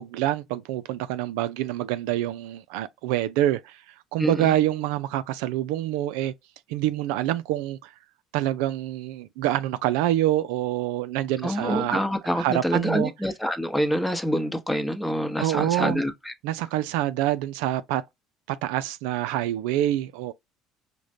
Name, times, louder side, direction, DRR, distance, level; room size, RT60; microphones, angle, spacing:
voice 1, 0.0-3.8 4.1-6.3 6.7-7.9 8.3-12.0 12.4-13.1 15.4-16.0 16.4-18.0 18.5-20.3, right 13 dB, 80° right, 0.3 m, -26 dB
voice 2, 4.2-4.5 11.4-16.3, equal, 5° left, 0.9 m, -26 dB
4.9 x 2.2 x 2.7 m
supercardioid pair, 80°, 0 cm